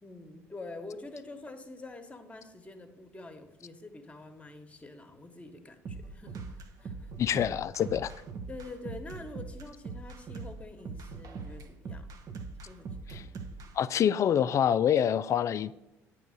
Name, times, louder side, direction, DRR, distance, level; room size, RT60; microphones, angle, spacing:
voice 1, 0.0-7.1 8.5-12.1 12.6-13.4, left 2 dB, 15° left, 1.1 m, -46 dB
sound 1, 5.8-13.7, right 4 dB, 55° right, 0.8 m, -41 dB
voice 2, 7.2-8.1 13.1-13.2 13.7-15.7, left 9 dB, 45° left, 0.3 m, -26 dB
9.1 x 3.1 x 6.4 m
hypercardioid pair, 60°, 7 cm